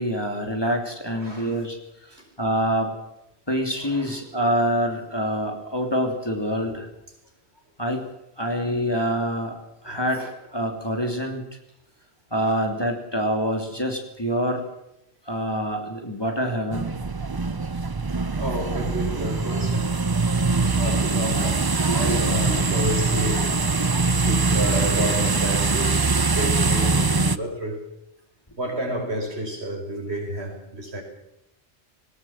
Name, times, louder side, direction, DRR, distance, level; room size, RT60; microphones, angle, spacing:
voice 1, 0.0-1.8 2.4-3.0 3.5-6.9 7.8-8.0 8.4-9.5 9.8-11.4 12.3-14.6 15.3-16.9 21.9-22.2 23.8-23.9, equal, 20° left, 2 dB, 3.2 m, -26 dB
voice 2, 1.1-1.6 2.1-2.3 3.8-4.1 6.6-6.8 9.9-10.0 17.6-17.7 18.4-19.9 20.6-23.6 24.3-27.8 28.6-31.0, right 1 dB, 70° right, 2 dB, 5.4 m, -30 dB
sound 1, 16.7-27.4, right 3 dB, 25° right, 0.6 m, -22 dB
19.5 x 19.0 x 7.4 m, 0.83 s
omnidirectional pair, 1.1 m